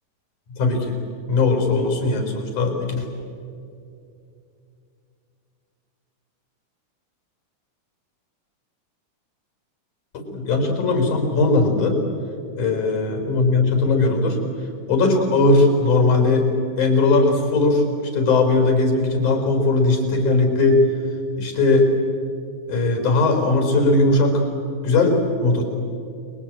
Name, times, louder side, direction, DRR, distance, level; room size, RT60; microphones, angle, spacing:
voice 1, 0.6-1.0 1.3-3.1 10.1-12.0 12.6-14.4 14.9-16.5 16.8-20.9 21.4-21.9 22.7-24.4 24.8-25.6, left 3 dB, 70° left, 4 dB, 5.7 m, -19 dB
30.0 x 22.0 x 8.9 m, 2.6 s
omnidirectional pair, 3.7 m